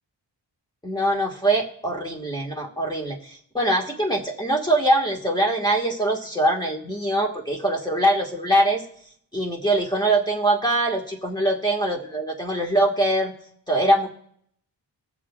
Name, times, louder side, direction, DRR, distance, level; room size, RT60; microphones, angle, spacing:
voice 1, 0.8-8.8 9.3-13.3 13.7-14.1, right 1 dB, 10° left, 1 dB, 1.4 m, -23 dB
22.5 x 7.5 x 2.3 m, 0.66 s
wide cardioid pair, 110°, 43 cm